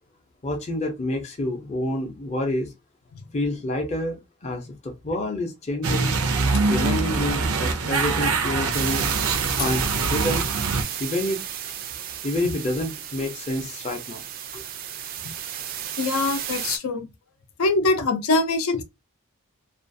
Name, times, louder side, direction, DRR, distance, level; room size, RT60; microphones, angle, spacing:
voice 1, 0.4-2.7 3.3-6.1 6.7-9.0 9.6-10.5 11.0-11.4 12.2-14.2 14.5-14.6, left 1 dB, 30° left, 0.5 m, -28 dB
sound 1, 5.8-10.8, right 4 dB, 90° right, 0.6 m, -24 dB
sound 2, 8.7-16.8, right 9 dB, 40° right, 0.3 m, -32 dB
voice 2, 16.0-17.1 17.6-18.8, left 3 dB, 85° left, 0.5 m, -23 dB
2.4 x 2.3 x 2.5 m
head